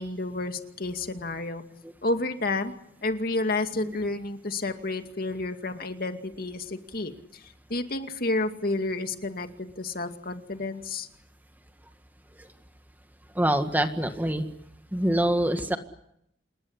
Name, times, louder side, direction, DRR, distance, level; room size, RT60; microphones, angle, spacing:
voice 1, 0.0-1.6 2.0-2.7 3.0-7.4 7.7-11.1, left 2 dB, 55° left, 6 dB, 2.4 m, -30 dB
voice 2, 13.4-14.5 14.9-15.8, right 1 dB, 10° right, 7 dB, 1.8 m, -25 dB
27.5 x 21.0 x 9.9 m, 0.76 s
head